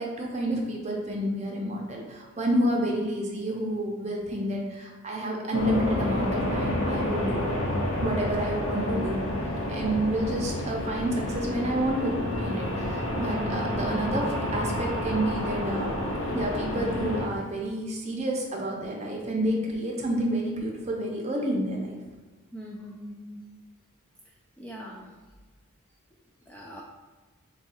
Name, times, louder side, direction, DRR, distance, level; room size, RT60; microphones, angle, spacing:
voice 1, 0.0-7.6 8.0-9.3 9.7-15.9 16.3-22.0, right 1 dB, 30° right, -1 dB, 0.7 m, -29 dB
sound 1, 5.5-17.3, left 1 dB, 65° left, 0.6 m, -29 dB
voice 2, 13.1-13.5 22.5-23.4 24.6-25.1 26.5-26.8, right 1 dB, 5° left, -3 dB, 0.3 m, -41 dB
3.5 x 2.3 x 4.2 m, 1.3 s
head